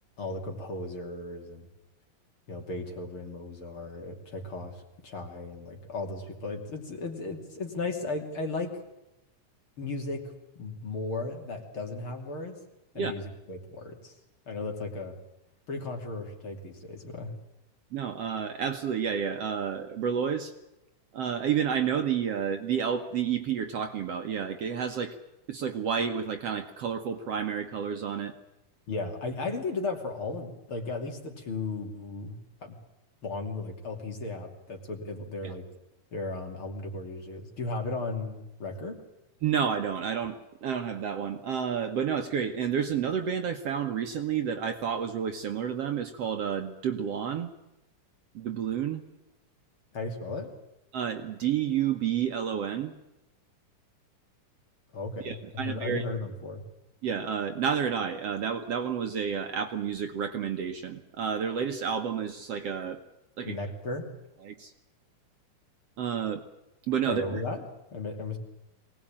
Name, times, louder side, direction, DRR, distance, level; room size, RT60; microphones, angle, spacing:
voice 1, 0.2-1.7 2.5-8.8 9.8-12.6 13.0-14.2 14.5-15.2 15.7-17.4 28.9-32.8 33.2-35.7 36.1-39.0 49.9-50.5 54.9-56.6 63.4-64.1 67.1-67.7 67.9-68.4, left 3 dB, 40° left, 3 dB, 3.5 m, -35 dB
voice 2, 17.9-20.5 21.1-25.1 25.5-28.3 35.4-35.5 39.4-47.5 48.4-49.0 50.9-52.9 55.2-56.0 57.0-63.0 63.4-63.6 64.4-64.7 66.0-66.4 66.9-67.4, right 7 dB, 60° right, 6 dB, 2.0 m, -30 dB
23.0 x 19.0 x 8.8 m, 0.93 s
omnidirectional pair, 3.7 m